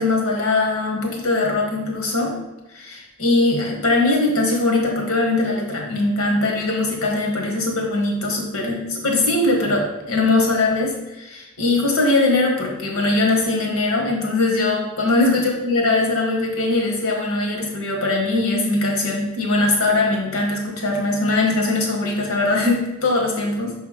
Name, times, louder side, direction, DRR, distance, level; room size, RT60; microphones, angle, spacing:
voice 1, 0.0-2.4 2.7-23.7, left 2 dB, 70° left, 0 dB, 1.6 m, -21 dB
6.5 x 3.5 x 5.1 m, 1.0 s
head